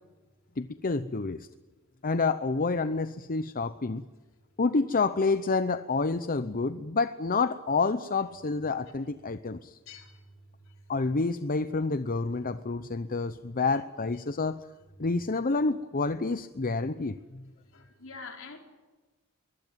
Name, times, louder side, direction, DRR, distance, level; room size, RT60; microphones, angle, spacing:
voice 1, 0.6-1.5 2.0-4.0 4.6-9.8 10.9-14.7 15.0-17.4, left 3 dB, 40° left, 12 dB, 0.8 m, -28 dB
voice 2, 9.9-10.3 10.6-10.8 17.7-18.6, left 4 dB, 65° left, 3 dB, 4.4 m, -45 dB
23.0 x 20.0 x 9.2 m, 1.3 s
head